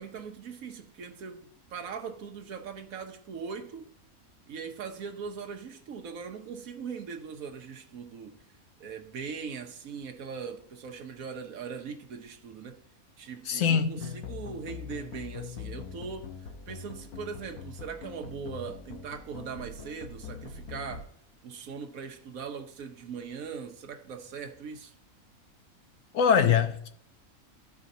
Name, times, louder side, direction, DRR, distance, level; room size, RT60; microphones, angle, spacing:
voice 1, 0.0-3.9 4.5-8.4 8.8-12.8 13.2-21.1 21.4-24.9, right 6 dB, 75° right, 1.3 m, -40 dB
voice 2, 13.5-14.2 26.1-26.9, left 7 dB, 65° left, 0.9 m, -24 dB
sound 1, 14.0-21.0, left 7 dB, 80° left, 1.4 m, -43 dB
14.5 x 5.0 x 2.7 m
omnidirectional pair, 1.5 m